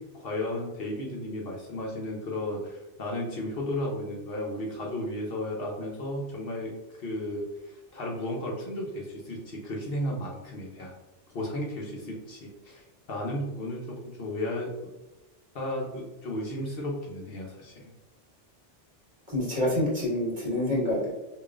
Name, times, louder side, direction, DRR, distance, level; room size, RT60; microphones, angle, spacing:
voice 1, 0.0-6.7 7.0-10.9 11.3-14.9 15.5-17.9, left 1 dB, 60° left, -1 dB, 0.8 m, -34 dB
voice 2, 19.3-21.1, left 1 dB, 40° right, -6 dB, 1.5 m, -27 dB
5.0 x 2.5 x 2.4 m, 1.1 s
omnidirectional pair, 1.2 m